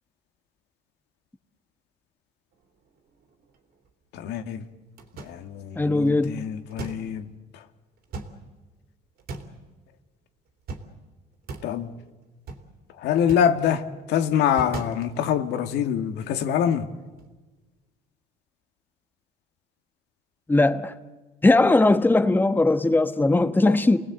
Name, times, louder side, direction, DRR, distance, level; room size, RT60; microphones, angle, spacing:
sound 1, 2.5-3.9 4.7-4.8 5.0-5.8 6.1-7.4 8.0-8.8 9.2-9.7 10.5-11.0 11.3-11.9 12.2-12.7 13.2-13.7 14.4-15.5 16.7-16.8 17.2-17.4, right 3 dB, 65° right, 3.1 m, -40 dB
voice 1, 4.1-4.7 5.2-7.3 11.6-11.9 13.0-16.9 23.4-23.8, left 8 dB, 85° left, 8 dB, 1.8 m, -25 dB
voice 2, 5.8-6.5 20.5-21.0 21.4-24.0, left 2 dB, 10° left, 10 dB, 1.1 m, -19 dB
29.0 x 19.5 x 8.0 m, 1.2 s
cardioid pair, 110°, 17 cm